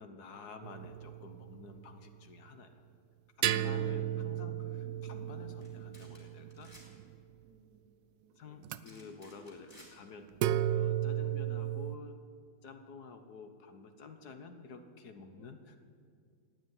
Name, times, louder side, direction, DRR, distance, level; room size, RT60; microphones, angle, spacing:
voice 1, 0.0-2.7 3.4-6.7 8.4-10.3 10.7-12.2 12.6-15.8, left 4 dB, 60° left, 7 dB, 1.5 m, -50 dB
sound 1, 0.6-1.8 3.4-7.2 8.6-8.8 10.4-12.0, right 11 dB, 80° right, 1.3 m, -34 dB
sound 2, 5.6-5.7 5.9-6.2 6.5-6.9 8.8-9.9, left 1 dB, 25° left, 4.2 m, -57 dB
voice 2, 7.4-8.4 8.9-9.4 15.3-15.5, right 4 dB, 60° right, 4 dB, 2.0 m, -65 dB
15.5 x 9.4 x 9.5 m, 2.2 s
omnidirectional pair, 2.0 m